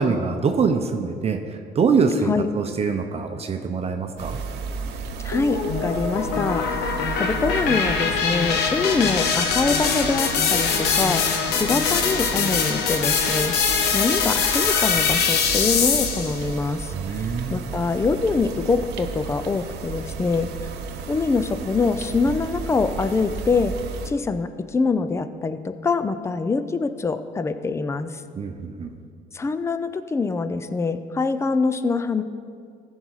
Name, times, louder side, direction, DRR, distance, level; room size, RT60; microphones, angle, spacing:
voice 1, 0.0-2.3 2.5-4.4 16.9-17.6 28.4-28.9, right 5 dB, 35° right, 5 dB, 0.7 m, -24 dB
sound 1, 4.2-24.1, right 5 dB, 80° right, 0.8 m, -34 dB
voice 2, 5.2-13.6 13.9-20.5 21.1-23.7 24.1-28.2 29.3-32.2, left 4 dB, 15° left, 11 dB, 0.4 m, -24 dB
sound 2, 5.3-16.4, left 6 dB, 75° left, 1.1 m, -23 dB
15.0 x 5.5 x 4.8 m, 2.2 s
cardioid pair, 110°, 17 cm